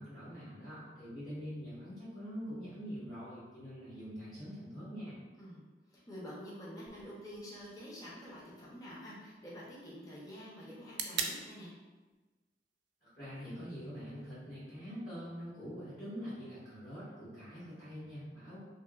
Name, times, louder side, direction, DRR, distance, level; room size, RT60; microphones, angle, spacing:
voice 1, 0.0-5.2 13.1-18.6, equal, 55° left, -16 dB, 1.5 m, -44 dB
voice 2, 5.9-11.7, equal, 20° left, -6 dB, 0.6 m, -48 dB
sound 1, 6.9-14.9, right 6 dB, 90° right, 0.3 m, -46 dB
2.9 x 2.8 x 2.3 m, 1.2 s
head